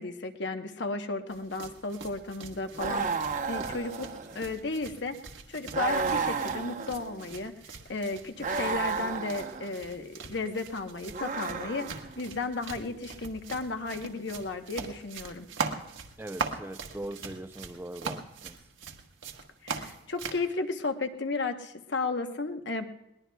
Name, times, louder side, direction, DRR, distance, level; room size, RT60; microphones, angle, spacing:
voice 1, 0.0-3.1 3.5-4.1 4.3-5.1 5.5-7.5 7.9-11.9 12.2-15.5 19.6-22.9, left 3 dB, 65° left, 1.0 m, -34 dB
sound 1, 1.3-20.4, right 5 dB, 85° right, 1.4 m, -41 dB
sound 2, 2.8-4.5 5.7-7.3 8.4-9.7 11.1-12.2, right 5 dB, 45° right, 0.9 m, -32 dB
voice 2, 16.2-18.6, right 1 dB, 10° right, 0.4 m, -40 dB
21.5 x 19.5 x 2.3 m
head